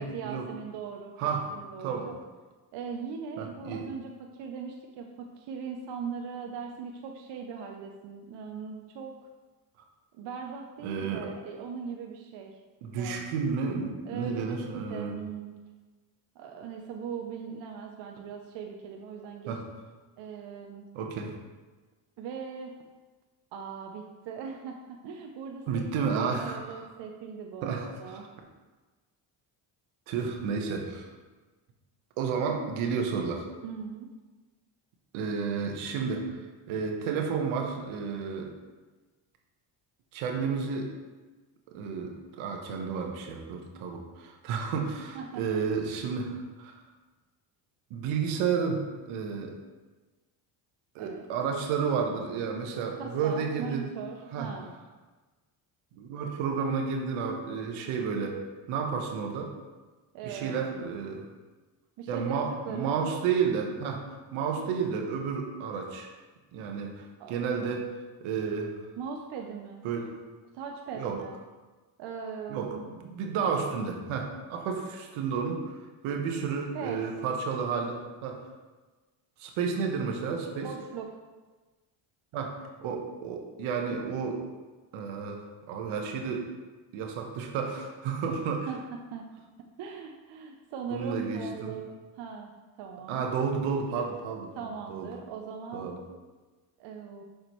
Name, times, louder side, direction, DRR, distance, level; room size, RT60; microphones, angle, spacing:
voice 1, 0.0-2.2 2.7-9.1 10.2-12.6 13.0-13.3 14.1-15.5 16.4-19.6 20.2-20.9 22.2-22.7 23.5-28.3 33.6-34.1 45.1-45.6 51.0-51.2 53.0-54.7 60.1-60.8 62.0-62.4 62.6-63.0 67.2-67.8 69.0-69.8 70.5-71.4 72.0-72.8 76.7-77.1 80.6-81.1 88.7-89.3 89.8-92.5 92.8-93.3 94.6-95.9 96.8-97.2, right 6 dB, 60° right, 2 dB, 0.7 m, -40 dB
voice 2, 3.4-3.8 10.8-11.3 12.8-15.1 19.5-19.6 20.9-21.3 25.7-26.9 27.6-28.2 30.1-31.1 32.2-33.5 35.1-36.3 36.7-38.5 40.1-40.9 41.7-46.8 47.9-48.8 49.1-49.5 50.9-53.9 54.3-54.5 56.0-58.4 58.7-59.5 60.2-61.2 62.1-64.0 64.3-66.1 66.5-67.9 68.2-68.7 69.8-70.1 70.9-71.2 72.5-72.8 73.0-75.8 76.0-78.4 79.4-80.7 82.3-84.4 84.9-86.5 86.9-88.7 90.9-91.7 93.1-94.5 94.9-95.1 95.7-96.0, right 6 dB, 80° right, 2 dB, 1.1 m, -31 dB
6.8 x 5.0 x 3.1 m, 1.3 s
cardioid pair, 95°, 48 cm